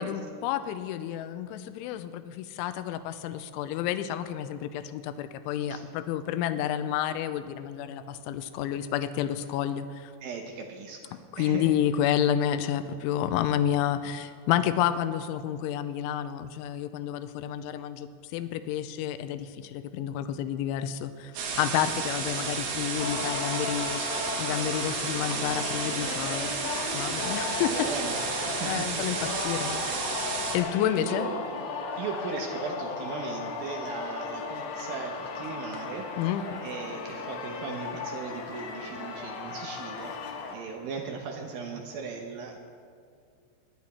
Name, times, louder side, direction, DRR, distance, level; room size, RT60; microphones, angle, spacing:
voice 1, 0.0-10.1 11.3-24.0 24.4-26.5 26.9-27.9 28.6-31.3 36.2-36.4, left 10 dB, 85° left, 11 dB, 2.9 m, -30 dB
voice 2, 10.2-11.6 24.0-24.6 27.7-28.2 28.5-29.0 31.0-31.4 32.0-36.1 36.6-40.1 40.5-42.6, right 5 dB, 90° right, 1 dB, 2.0 m, -38 dB
sound 1, 21.4-30.6, right 5 dB, 70° right, 3.9 m, -32 dB
Singing, 23.0-40.5, left 4 dB, 65° left, 2.6 m, -36 dB
22.0 x 10.5 x 4.3 m, 2.3 s
omnidirectional pair, 5.7 m